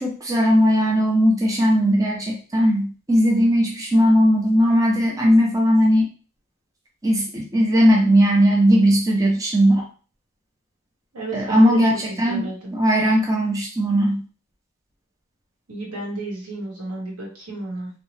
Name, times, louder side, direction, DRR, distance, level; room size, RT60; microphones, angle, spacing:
voice 1, 0.0-6.1 7.0-9.9 11.3-14.2, equal, 15° right, -1 dB, 0.5 m, -18 dB
voice 2, 11.1-11.8 12.1-12.8 15.7-17.9, right 2 dB, 80° right, -3 dB, 1.3 m, -32 dB
2.7 x 2.1 x 3.1 m, 0.37 s
head